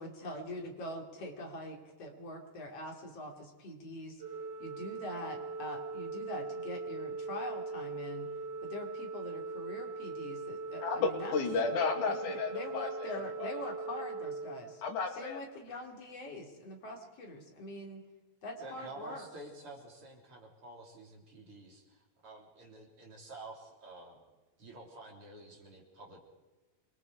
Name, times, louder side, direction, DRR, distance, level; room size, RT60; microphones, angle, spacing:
voice 1, 0.0-4.2 4.6-8.3 8.6-11.3 12.1-14.8 15.1-18.0 18.4-19.3, left 1 dB, 55° left, 1 dB, 4.0 m, -43 dB
Organ, 4.2-15.3, right 3 dB, 75° right, 0.6 m, -41 dB
voice 2, 10.8-13.5 14.8-15.4, left 4 dB, 85° left, 3 dB, 3.8 m, -33 dB
voice 3, 18.6-24.2 24.6-26.2, right 2 dB, 45° right, 0 dB, 4.2 m, -50 dB
27.0 x 22.0 x 4.8 m, 1.2 s
omnidirectional pair, 3.4 m